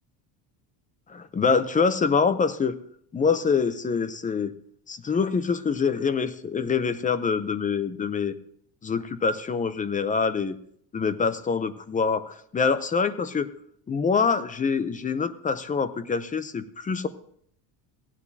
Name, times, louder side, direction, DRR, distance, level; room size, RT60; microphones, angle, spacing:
voice 1, 1.1-2.8 3.1-4.5 4.9-8.3 8.8-10.6 10.9-13.5 13.9-17.1, left 5 dB, 15° left, 13 dB, 0.6 m, -25 dB
16.5 x 9.9 x 2.7 m, 0.65 s
cardioid pair, 140°, 48 cm